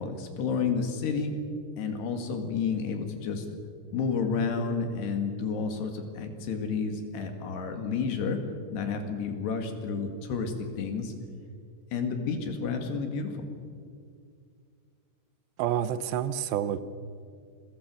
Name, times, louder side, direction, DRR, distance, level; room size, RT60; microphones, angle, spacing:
voice 1, 0.0-1.4 1.8-3.5 3.9-8.4 8.7-11.1 11.9-13.4, left 5 dB, 70° left, 5 dB, 4.1 m, -30 dB
voice 2, 15.6-16.8, right 10 dB, 75° right, 14 dB, 3.0 m, -28 dB
28.5 x 22.5 x 6.4 m, 2.2 s
omnidirectional pair, 5.2 m